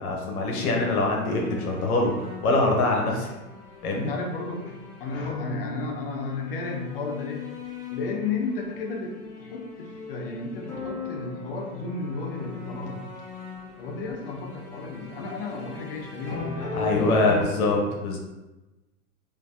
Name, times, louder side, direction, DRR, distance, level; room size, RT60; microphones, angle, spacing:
voice 1, 0.0-3.3 3.8-4.1 16.8-18.2, left 2 dB, 70° left, 0 dB, 0.8 m, -24 dB
sound 1, 0.6-17.4, left 5 dB, 15° left, 1.0 m, -38 dB
voice 2, 3.9-7.5 7.9-13.0 13.8-17.8, left 3 dB, 40° left, 2 dB, 0.4 m, -33 dB
3.2 x 2.6 x 2.4 m, 1.1 s
hypercardioid pair, 135°, 46 cm